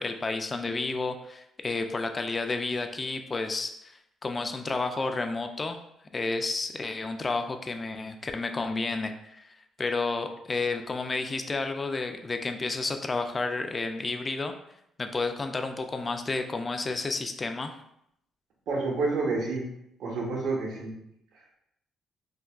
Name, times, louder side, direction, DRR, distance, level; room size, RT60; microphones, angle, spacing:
voice 1, 0.0-3.9 4.2-5.8 6.1-9.5 9.8-14.5 15.0-17.7, left 3 dB, 30° left, 6 dB, 0.3 m, -31 dB
voice 2, 18.7-19.6 20.0-20.9, right 3 dB, 80° right, -2 dB, 0.8 m, -29 dB
3.5 x 2.2 x 2.3 m, 0.78 s
cardioid pair, 90°, 0 cm